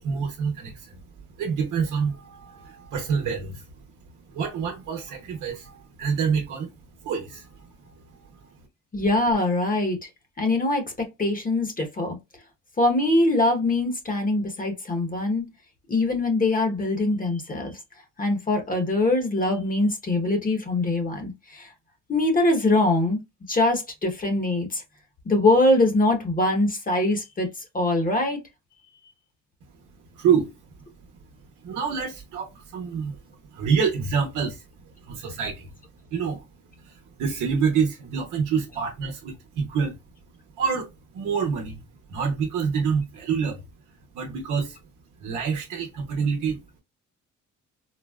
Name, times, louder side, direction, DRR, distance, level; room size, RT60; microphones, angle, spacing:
voice 1, 0.0-8.5 30.1-30.5 31.6-34.6 35.0-35.7 36.1-36.5 36.8-40.0 40.6-41.8 42.1-43.6 44.1-44.8 45.2-46.6, right 6 dB, 85° right, 0.8 m, -27 dB
voice 2, 8.9-10.0 10.4-10.9 11.2-12.2 12.8-15.4 15.9-17.7 18.2-21.7 22.1-23.2 23.5-24.8 25.2-27.5 27.7-28.4, left 2 dB, 30° left, 1.0 m, -23 dB
4.1 x 2.0 x 2.3 m
cardioid pair, 90°, 30 cm